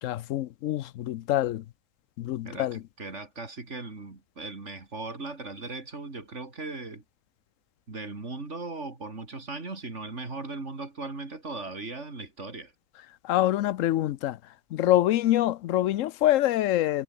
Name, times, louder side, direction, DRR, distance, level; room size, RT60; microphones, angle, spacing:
voice 1, 0.0-1.6 2.2-2.8 13.2-14.4 14.7-17.0, left 14 dB, 75° left, 1.0 m, -25 dB
voice 2, 2.4-7.0 7.9-12.7, right 3 dB, 60° right, 3.4 m, -38 dB
omnidirectional pair, 1.4 m